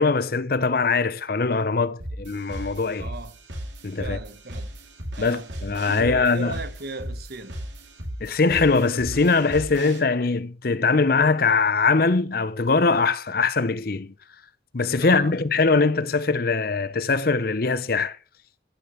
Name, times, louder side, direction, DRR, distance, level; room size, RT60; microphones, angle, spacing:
voice 1, 0.0-3.1 3.8-4.2 5.2-6.6 8.2-14.1 14.7-18.2, left 4 dB, 55° left, 0.7 m, -22 dB
sound 1, 2.0-10.0, equal, 80° right, 3.6 m, -36 dB
voice 2, 3.0-3.3 4.0-4.7 5.2-5.5 5.9-7.6 15.0-15.3, right 3 dB, 55° right, 1.4 m, -37 dB
15.0 x 6.8 x 7.0 m
head